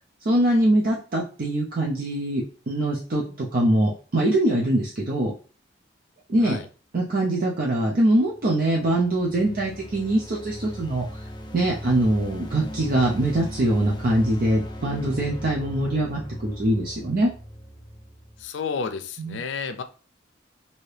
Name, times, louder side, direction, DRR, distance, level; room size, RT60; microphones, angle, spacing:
voice 1, 0.2-5.3 6.3-6.6 6.9-11.2 11.5-17.3 19.2-19.4, right 1 dB, 50° right, 0.5 m, -23 dB
sound 1, 8.2-18.4, equal, 25° left, 0.4 m, -38 dB
voice 2, 18.4-19.8, left 5 dB, 80° left, 0.4 m, -31 dB
2.7 x 2.7 x 3.2 m
head